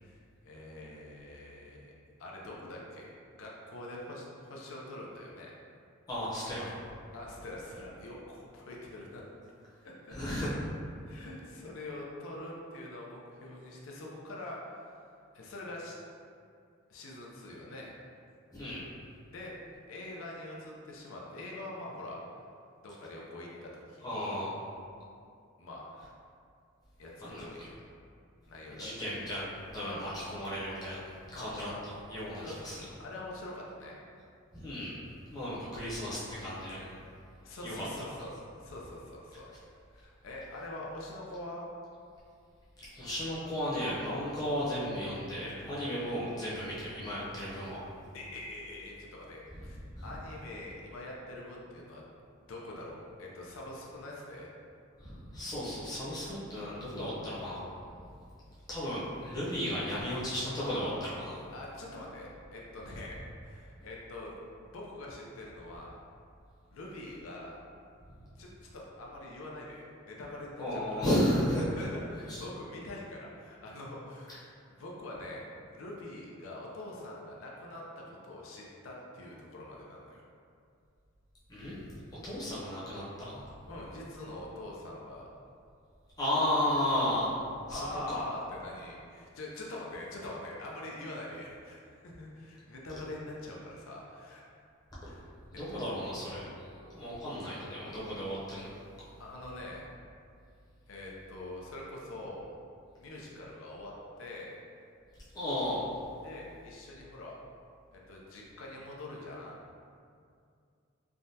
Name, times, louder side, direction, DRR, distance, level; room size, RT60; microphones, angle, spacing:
voice 1, 0.0-1.9 2.2-5.5 7.1-9.2 9.8-10.2 11.1-14.8 15.3-16.0 16.9-17.9 19.3-19.5 19.9-22.2 22.8-24.4 25.6-25.9 27.0-27.6 28.5-29.0 29.8-30.3 31.3-31.6 32.4-32.6 33.0-33.9 35.3-35.7 37.4-38.3 38.6-39.5 39.9-41.7 48.1-52.1 52.3-54.5 61.5-63.2 63.4-64.4 64.6-65.9 66.7-67.6 68.4-71.1 71.7-74.4 74.7-80.2 83.7-85.3 87.7-94.4 95.1-95.3 95.7-95.8 99.2-99.8 100.9-102.5 103.0-104.6 106.2-107.4 107.9-109.6, left 1 dB, 90° left, -3 dB, 0.5 m, -44 dB
voice 2, 6.1-6.7 10.1-10.5 18.5-18.9 24.0-24.6 27.2-27.7 28.7-29.4 29.7-31.0 31.4-32.8 34.5-35.0 35.3-37.0 37.6-37.8 38.2-38.3 42.9-47.8 50.0-50.1 55.0-57.6 58.7-61.5 70.6-71.7 72.3-72.4 74.3-74.4 81.5-82.0 82.2-83.5 86.2-88.2 95.5-98.7 105.3-105.9, equal, 20° left, -9 dB, 0.6 m, -34 dB
3.4 x 2.1 x 2.7 m, 2.3 s
head